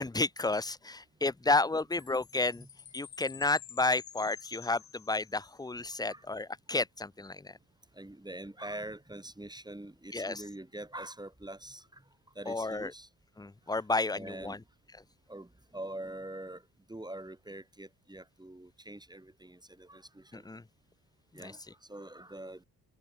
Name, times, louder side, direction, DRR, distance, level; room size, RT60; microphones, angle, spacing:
voice 1, 0.0-2.7 2.9-7.6 10.1-10.4 12.5-12.9 13.4-14.6 20.5-20.6 21.4-21.5, left 3 dB, 10° left, 0.7 m, -31 dB
Chime, 1.9-5.6, left 9 dB, 35° left, 1.0 m, -50 dB
voice 2, 5.9-6.3 7.9-12.0 12.3-13.1 13.7-14.6 15.3-16.6 16.9-20.5 21.3-22.6, right 1 dB, 10° right, 2.6 m, -44 dB
hypercardioid pair, 50°, 50 cm